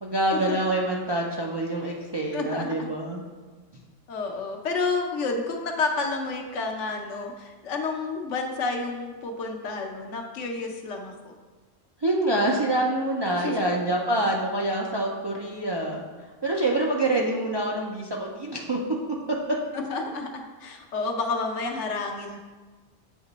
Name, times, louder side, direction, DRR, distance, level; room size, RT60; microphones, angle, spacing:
voice 1, 0.0-3.2 12.0-16.0 16.4-18.8, right 1 dB, 45° right, -2 dB, 0.3 m, -26 dB
voice 2, 2.3-2.9 4.1-11.3 13.3-13.8 19.7-22.4, left 3 dB, 85° left, 3 dB, 1.1 m, -30 dB
8.1 x 2.9 x 4.0 m, 1.3 s
omnidirectional pair, 1.2 m